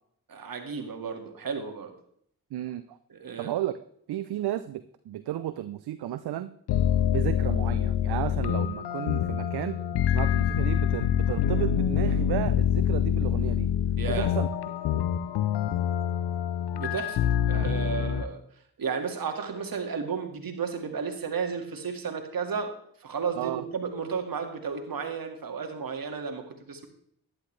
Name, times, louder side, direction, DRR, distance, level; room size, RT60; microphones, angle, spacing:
voice 1, 0.3-1.9 3.1-3.5 14.0-14.3 16.7-18.4 18.8-22.7 23.0-26.9, right 6 dB, 60° right, 5 dB, 2.0 m, -33 dB
voice 2, 2.5-3.0 3.4-3.7 4.1-6.5 7.1-9.8 10.1-13.7 14.0-14.5 23.4-23.6, right 13 dB, 75° right, 12 dB, 0.6 m, -33 dB
sound 1, 6.7-18.2, left 9 dB, 85° left, 0.7 m, -26 dB
11.5 x 11.0 x 3.3 m, 0.67 s
supercardioid pair, 45°, 39 cm